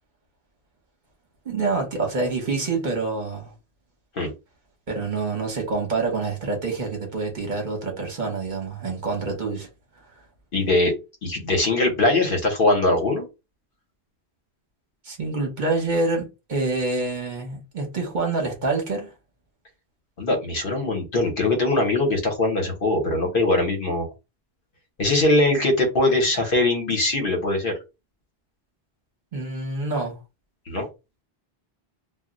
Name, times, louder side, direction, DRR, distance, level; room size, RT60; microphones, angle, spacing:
voice 1, 1.4-3.5 4.9-9.7 15.0-19.1 29.3-30.2, right 3 dB, 50° right, 1.0 m, -26 dB
voice 2, 10.5-10.9 11.2-13.2 20.2-24.1 25.0-27.8 30.7-30.9, left 2 dB, 60° left, 1.0 m, -21 dB
2.3 x 2.1 x 3.6 m
omnidirectional pair, 1.0 m